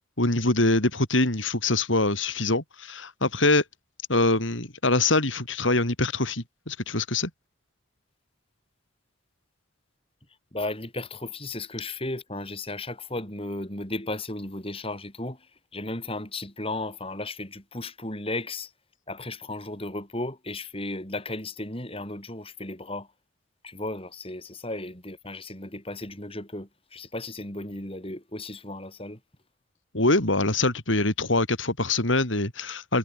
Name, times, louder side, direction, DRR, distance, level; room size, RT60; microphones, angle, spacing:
voice 1, 0.2-3.6 4.1-7.3 29.9-33.0, left 2 dB, 75° left, 4.8 m, -24 dB
voice 2, 10.5-15.5 15.7-18.7 19.1-23.1 23.6-29.2, left 2 dB, 30° left, 6.7 m, -35 dB
head